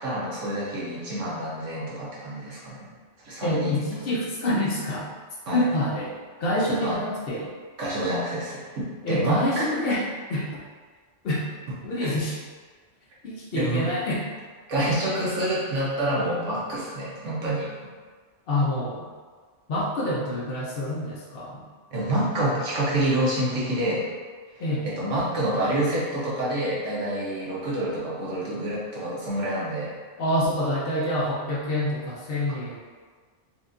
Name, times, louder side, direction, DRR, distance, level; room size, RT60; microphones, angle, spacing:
voice 1, 0.0-2.9 3.2-3.8 5.5-5.6 6.8-7.0 7.8-9.6 11.9-12.1 13.5-13.9 14.7-17.7 21.9-24.1 24.5-24.6 25.0-29.9, right 1 dB, 75° right, -6 dB, 1.3 m, -27 dB
voice 2, 3.4-5.1 5.5-6.1 6.4-7.5 9.0-10.6 11.2-11.5 11.8-12.4 13.2-14.3 18.5-19.1 19.7-21.6 24.6-24.9 30.2-32.8, left 1 dB, 60° left, -5 dB, 0.7 m, -27 dB
4.3 x 2.4 x 2.5 m, 1.5 s
omnidirectional pair, 1.2 m